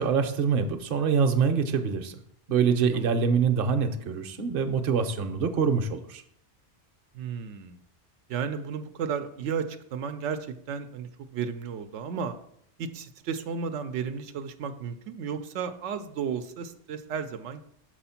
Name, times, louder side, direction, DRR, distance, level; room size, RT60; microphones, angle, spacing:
voice 1, 0.0-2.2 2.5-6.2, right 6 dB, 60° right, 7 dB, 0.9 m, -25 dB
voice 2, 7.1-7.8 8.3-12.4 12.8-17.6, right 6 dB, 90° right, 8 dB, 0.9 m, -33 dB
6.8 x 4.9 x 5.7 m, 0.71 s
omnidirectional pair, 1.2 m